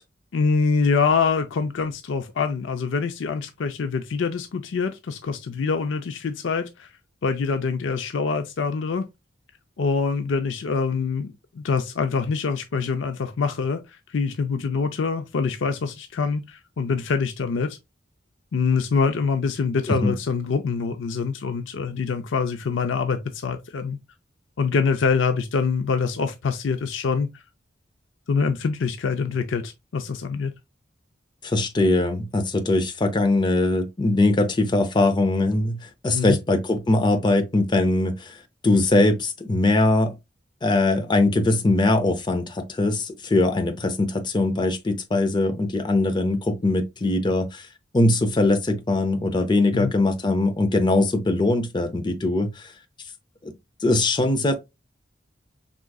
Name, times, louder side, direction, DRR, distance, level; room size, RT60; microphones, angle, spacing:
voice 1, 0.3-6.9 7.2-9.1 9.8-17.8 18.5-24.0 24.6-27.4 28.3-30.5 36.1-36.4 49.7-49.9, left 5 dB, 85° left, 0.5 m, -25 dB
voice 2, 31.4-38.4 38.6-40.1 40.6-47.7 47.9-52.7 53.4-53.5 53.8-54.5, left 2 dB, 25° left, 0.5 m, -21 dB
4.7 x 3.7 x 2.3 m
head